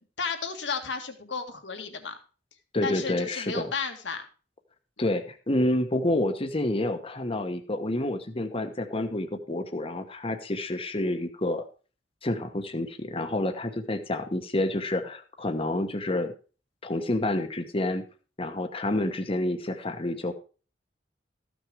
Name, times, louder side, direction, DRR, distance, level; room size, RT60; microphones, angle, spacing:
voice 1, 0.2-2.2 2.8-4.3, left 5 dB, 70° left, 5 dB, 1.9 m, -33 dB
voice 2, 2.7-3.7 5.0-11.6 12.2-16.3 16.8-18.1 18.4-20.3, left 1 dB, 30° left, 7 dB, 1.1 m, -28 dB
14.0 x 6.3 x 4.9 m, 0.36 s
head